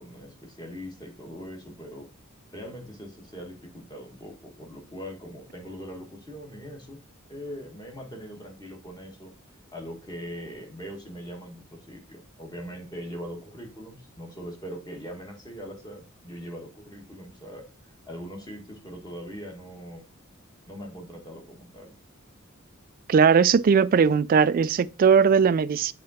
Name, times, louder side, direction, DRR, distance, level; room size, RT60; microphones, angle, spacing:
voice 1, 0.0-2.1 2.5-7.0 7.3-9.3 9.7-17.6 18.1-20.0 20.7-21.9, equal, 20° left, 1.6 m, -41 dB
voice 2, 23.1-25.9, right 6 dB, 40° right, 0.3 m, -19 dB
7.4 x 3.8 x 4.2 m
head